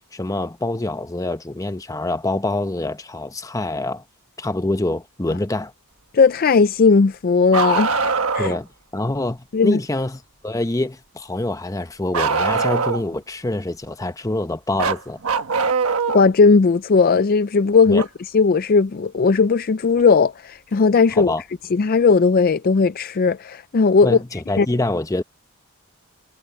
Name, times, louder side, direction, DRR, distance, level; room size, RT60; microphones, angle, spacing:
voice 1, 0.1-4.0 4.4-5.7 8.4-15.2 17.9-18.0 21.1-21.4 24.0-25.2, left 2 dB, 15° left, 0.8 m, -25 dB
voice 2, 6.1-8.0 8.3-8.5 9.5-9.8 16.1-18.1 18.3-21.3 21.7-24.2 24.6-24.7, left 4 dB, 40° left, 0.4 m, -16 dB
Bark, 7.5-8.6 12.1-13.2 14.8-16.3 18.0-18.1 20.0-20.1 21.2-21.3, right 5 dB, 70° right, 1.3 m, -22 dB
head